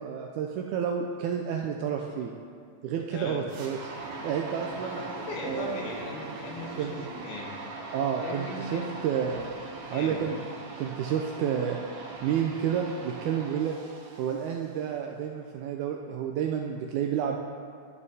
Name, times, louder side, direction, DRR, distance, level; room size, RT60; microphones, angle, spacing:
voice 1, 0.0-2.3 2.8-3.9 4.2-5.0 5.4-5.8 6.7-7.0 7.9-9.5 9.9-10.4 10.8-11.8 12.2-13.7 14.2-17.4, right 8 dB, 80° right, 2 dB, 1.7 m, -30 dB
voice 2, 3.1-3.4 4.8-7.6 8.2-8.8 9.9-10.2, left 2 dB, 70° left, -1 dB, 2.5 m, -38 dB
sound 1, 3.5-14.8, right 3 dB, 65° right, 1.8 m, -41 dB
12.5 x 8.1 x 2.7 m, 2.2 s
omnidirectional pair, 3.8 m